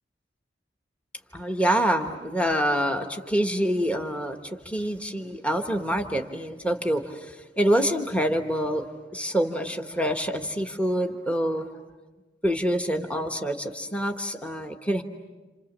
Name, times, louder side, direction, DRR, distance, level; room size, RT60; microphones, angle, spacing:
voice 1, 1.3-8.9 9.1-11.7 12.4-15.0, equal, 5° left, 4 dB, 1.3 m, -26 dB
29.0 x 28.0 x 7.3 m, 1.3 s
head